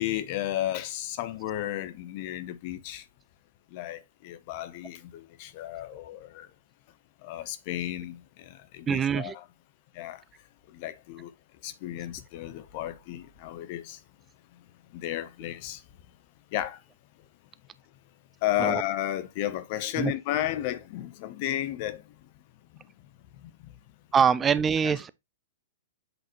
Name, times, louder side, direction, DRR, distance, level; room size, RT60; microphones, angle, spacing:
voice 1, 0.0-3.0 3.7-6.5 7.2-9.4 9.9-10.2 10.7-11.3 11.6-14.0 14.9-15.8 16.5-16.8 18.4-22.0 23.4-23.7 24.8-25.1, left 13 dB, 45° left, 0.8 m, -33 dB
voice 2, 8.9-9.4 18.6-18.8 20.0-20.1 24.1-25.1, right 7 dB, 20° right, 0.4 m, -24 dB
8.0 x 3.9 x 3.0 m
hypercardioid pair, 115°, 0 cm